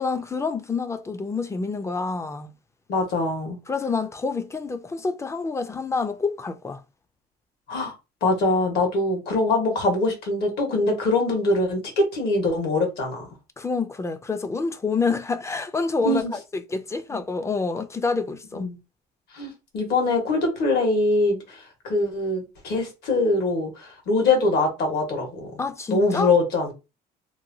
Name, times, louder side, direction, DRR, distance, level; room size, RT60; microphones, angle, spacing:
voice 1, 0.0-2.5 3.7-6.8 13.6-16.2 16.5-18.7 25.6-26.3, left 4 dB, 15° left, 0.3 m, -27 dB
voice 2, 2.9-3.6 7.7-7.9 8.2-13.3 16.0-16.3 18.5-18.8 19.3-25.5 25.9-26.7, left 2 dB, 70° left, 1.4 m, -23 dB
2.9 x 2.2 x 2.7 m
cardioid pair, 110°, 17 cm